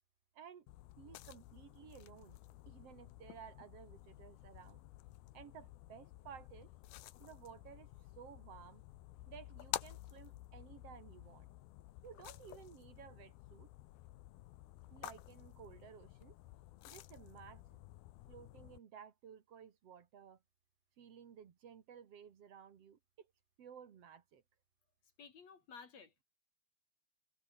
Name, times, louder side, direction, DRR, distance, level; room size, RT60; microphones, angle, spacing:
voice 1, 0.3-0.7 1.0-2.4 2.7-4.8 5.3-6.7 7.2-8.8 9.3-11.5 12.0-13.7 14.9-16.3 16.9-17.8 18.3-20.4 21.0-23.3 23.6-24.4, right 8 dB, 50° right, 2.2 m, -56 dB
sound 1, 0.7-18.8, left 17 dB, 75° left, 2.7 m, -52 dB
voice 2, 25.2-26.2, left 6 dB, 45° left, 3.3 m, -55 dB
omnidirectional pair, 4.7 m